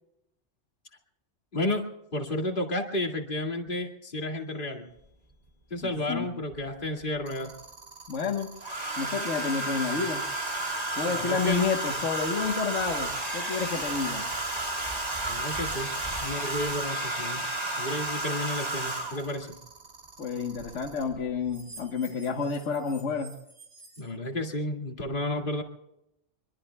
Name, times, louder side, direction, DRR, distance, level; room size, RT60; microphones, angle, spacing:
voice 1, 1.5-1.8 2.1-4.9 5.7-7.5 11.1-11.7 15.2-15.9 16.2-17.5 17.8-19.6 24.0-25.6, left 1 dB, 45° left, 3 dB, 2.3 m, -32 dB
sound 1, 4.4-4.7 7.3-21.0 21.5-24.0, right 4 dB, 85° right, 6.0 m, -49 dB
Domestic sounds home sounds, 5.0-5.1 6.5-7.2 8.6-19.4 20.6-20.9 21.1-21.5, right 2 dB, 35° right, 1.9 m, -32 dB
voice 2, 5.8-6.3 8.1-8.5 9.0-10.2 11.0-14.3 20.2-23.3, left 5 dB, 90° left, 3 dB, 1.6 m, -30 dB
25.0 x 23.5 x 2.3 m, 0.83 s
omnidirectional pair, 1.2 m